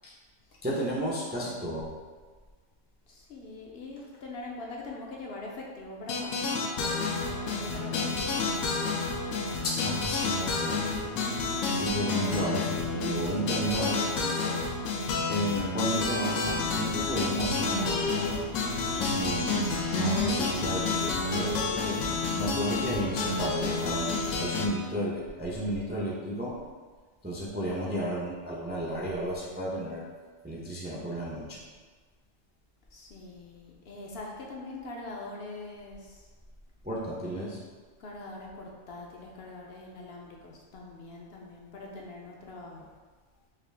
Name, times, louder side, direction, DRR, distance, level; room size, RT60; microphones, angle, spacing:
voice 1, 0.6-1.9 9.6-10.8 11.7-14.5 15.3-18.3 19.0-19.5 19.9-22.0 22.4-26.5 27.2-30.0 30.4-31.6 36.8-37.6, right 1 dB, 15° right, -5 dB, 0.3 m, -33 dB
voice 2, 1.3-1.6 3.1-8.9 32.9-36.3 38.0-42.8, left 2 dB, 60° left, -2 dB, 0.7 m, -43 dB
sound 1, 6.1-24.7, left 3 dB, 80° left, 1.0 m, -29 dB
sound 2, 16.5-24.3, left 1 dB, 85° right, 1.9 m, -46 dB
4.9 x 2.4 x 3.3 m, 1.4 s
omnidirectional pair, 1.3 m